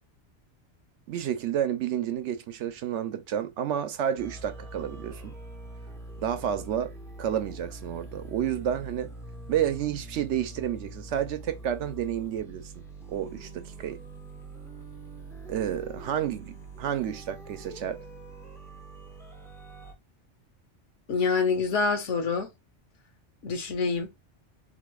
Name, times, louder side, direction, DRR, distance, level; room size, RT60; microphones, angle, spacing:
voice 1, 1.1-5.4 6.2-6.9 7.2-9.1 9.5-12.7 13.1-14.0 15.5-18.0, right 10 dB, 75° right, 0.9 m, -30 dB
sound 1, 4.2-19.9, right 2 dB, 5° left, 0.7 m, -44 dB
voice 2, 21.1-22.5 23.4-24.1, left 5 dB, 85° left, 1.2 m, -26 dB
4.0 x 2.9 x 2.3 m
omnidirectional pair, 1.2 m